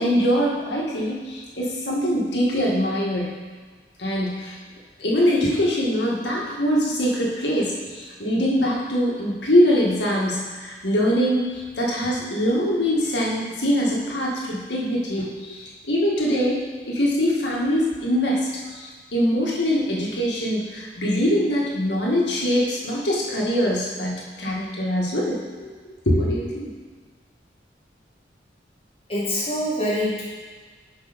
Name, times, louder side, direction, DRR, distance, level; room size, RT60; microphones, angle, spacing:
voice 1, 0.0-3.3 4.0-4.6 5.0-25.7 26.1-26.7, equal, 75° left, -3 dB, 1.6 m, -23 dB
voice 2, 29.1-30.2, left 1 dB, 30° left, -7 dB, 1.9 m, -24 dB
6.1 x 5.2 x 5.1 m, 1.5 s
head